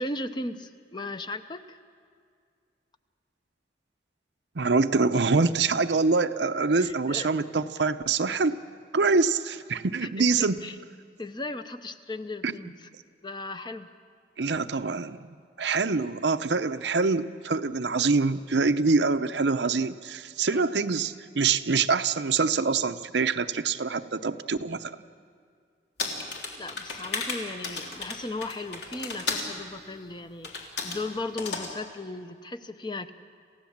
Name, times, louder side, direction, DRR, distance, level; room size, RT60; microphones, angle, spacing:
voice 1, 0.0-1.8 6.8-7.3 10.0-10.8 11.2-12.9 13.2-13.9 20.5-20.8 26.6-30.5 30.8-33.1, left 2 dB, 25° left, 9 dB, 0.7 m, -36 dB
voice 2, 4.5-8.6 8.9-10.6 12.4-12.5 14.4-25.0, right 4 dB, 90° right, 9 dB, 0.7 m, -25 dB
sound 1, 26.0-29.5 30.4-31.0 31.4-31.7, left 4 dB, 80° left, 3.3 m, -33 dB
28.5 x 16.0 x 7.3 m, 2.2 s
head